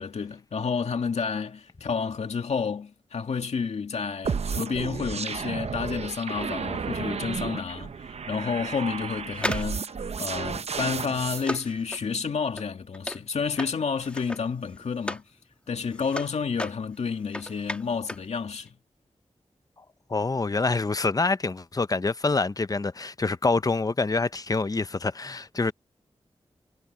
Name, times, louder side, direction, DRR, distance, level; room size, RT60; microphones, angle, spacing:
voice 1, 0.0-15.2 15.7-18.7, left 5 dB, 85° left, 2.3 m, -30 dB
sound 1, 4.2-11.4, right 6 dB, 70° right, 0.7 m, -32 dB
sound 2, 9.3-15.3 15.7-18.3 18.6-18.7, left 1 dB, 10° left, 1.5 m, -37 dB
voice 2, 20.1-25.7, left 3 dB, 35° left, 0.7 m, -26 dB
cardioid pair, 60°, 11 cm